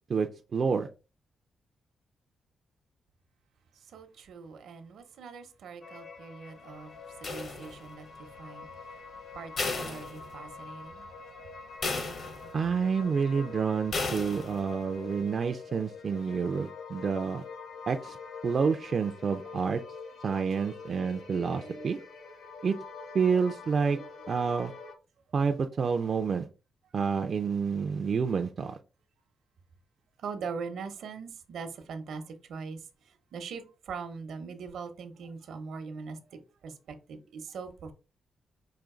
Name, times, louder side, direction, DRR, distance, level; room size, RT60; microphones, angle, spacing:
voice 1, 0.1-0.9 12.5-17.4 17.9-18.2 18.4-19.8 20.2-22.0 22.6-22.7 23.1-24.0 24.3-24.7 25.3-26.5 26.9-28.8, right 5 dB, 40° right, 0.4 m, -28 dB
voice 2, 3.7-9.1 9.3-11.8 20.5-20.8 21.6-22.0 22.4-22.6 23.9-24.1 27.1-27.2 30.2-37.9, right 5 dB, 75° right, 0.8 m, -42 dB
sound 1, 5.8-25.0, left 4 dB, 75° left, 0.8 m, -46 dB
sound 2, 7.2-8.1 9.6-10.7 11.1-11.2 11.8-12.7 13.9-14.7, left 3 dB, 50° left, 0.8 m, -34 dB
5.0 x 2.6 x 3.7 m
cardioid pair, 135°, 0 cm